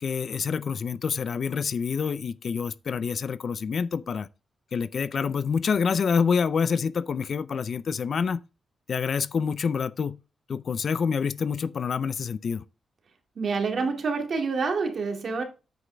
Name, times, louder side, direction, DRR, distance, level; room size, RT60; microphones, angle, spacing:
voice 1, 0.0-4.3 4.7-8.4 8.9-10.2 10.5-12.6, left 6 dB, 45° left, 0.4 m, -27 dB
voice 2, 13.4-15.4, right 4 dB, 50° right, 2.4 m, -27 dB
9.8 x 8.3 x 3.4 m
wide cardioid pair, 170°, 0 cm